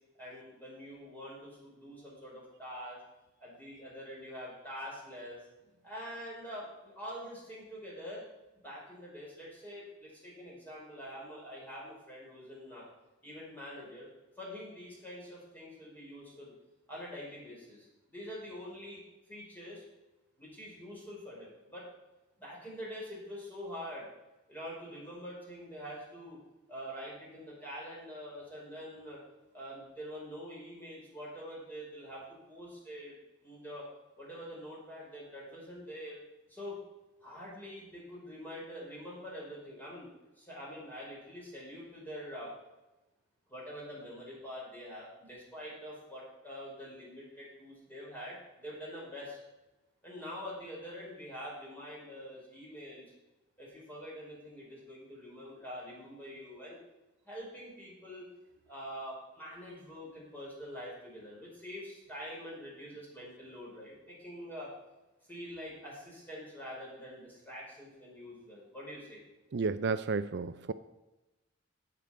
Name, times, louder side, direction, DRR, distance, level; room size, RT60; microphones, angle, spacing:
voice 1, 0.2-3.0 3.4-5.4 5.8-8.2 8.6-12.9 13.2-14.1 14.4-16.5 16.9-19.0 19.3-19.8 20.4-21.9 22.4-24.1 24.5-26.4 26.7-29.2 29.5-33.2 33.4-33.9 34.2-36.2 36.5-36.8 37.2-42.5 43.5-49.4 50.0-53.1 53.6-56.8 57.3-58.3 58.7-64.7 65.3-69.2, equal, 10° left, -6 dB, 5.2 m, -45 dB
voice 2, 69.5-70.7, right 4 dB, 60° right, 12 dB, 0.5 m, -32 dB
16.5 x 6.8 x 5.1 m, 1.0 s
head